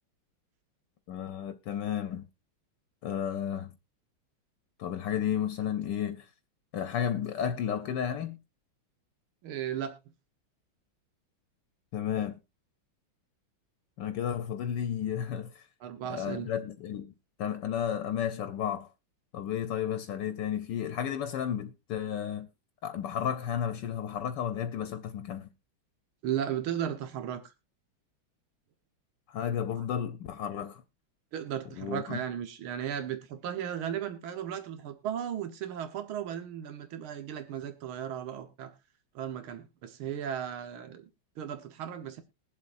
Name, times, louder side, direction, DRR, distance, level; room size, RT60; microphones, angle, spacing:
voice 1, 1.1-2.2 3.0-3.7 4.8-6.3 6.7-8.4 11.9-12.4 14.0-15.7 16.1-17.1 17.4-18.9 19.3-22.5 22.8-25.5 29.3-30.8 31.8-32.2, left 9 dB, 65° left, 1.3 m, -32 dB
voice 2, 9.4-10.0 15.8-16.5 26.2-27.4 29.8-29.9 31.3-38.7 39.2-41.1 41.4-42.2, right 9 dB, 85° right, 2.0 m, -35 dB
21.5 x 7.4 x 2.5 m
omnidirectional pair, 2.2 m